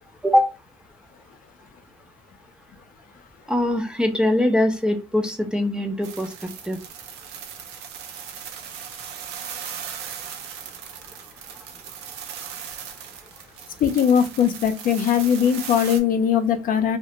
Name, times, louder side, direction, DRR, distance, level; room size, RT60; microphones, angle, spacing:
voice 1, 0.2-0.5 3.5-6.8, left 1 dB, 5° right, 5 dB, 0.3 m, -22 dB
sound 1, 6.0-16.0, right 8 dB, 90° right, 0.5 m, -38 dB
voice 2, 13.8-17.0, left 8 dB, 55° left, 8 dB, 0.5 m, -20 dB
2.4 x 2.1 x 2.8 m, 0.28 s
cardioid pair, 110°, 17 cm